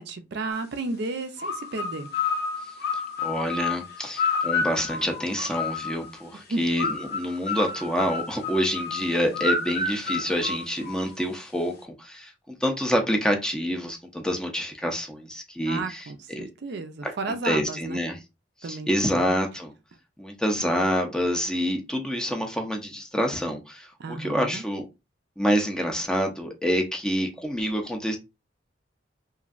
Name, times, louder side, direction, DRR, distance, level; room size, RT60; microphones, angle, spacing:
voice 1, 0.0-2.1 6.5-6.6 15.7-18.0 18.6-18.9 19.1-19.4 24.0-24.6, right 3 dB, 60° right, 0.4 m, -33 dB
sound 1, 1.4-6.1 6.8-11.2, left 4 dB, 60° left, 0.7 m, -30 dB
voice 2, 3.2-16.5 17.0-17.1 17.4-18.2 18.6-19.7 20.2-24.8 25.4-28.2, equal, 5° left, 0.5 m, -27 dB
3.0 x 2.6 x 2.4 m
head